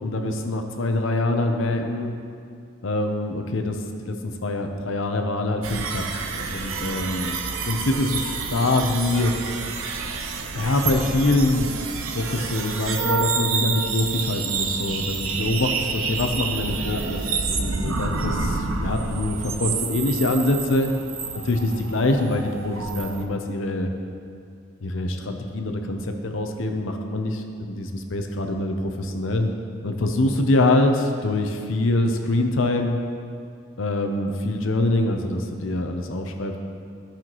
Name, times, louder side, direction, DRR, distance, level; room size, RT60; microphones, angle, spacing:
voice 1, 0.0-2.1 2.8-6.0 6.5-7.3 7.6-8.2 8.5-9.3 10.5-11.7 12.1-20.9 21.4-23.9 24.8-29.5 29.8-33.0 33.8-36.6, left 2 dB, 65° left, 4 dB, 0.7 m, -24 dB
sound 1, 5.6-23.2, right 4 dB, 80° right, 0.7 m, -28 dB
13.5 x 5.8 x 3.0 m, 2.3 s
head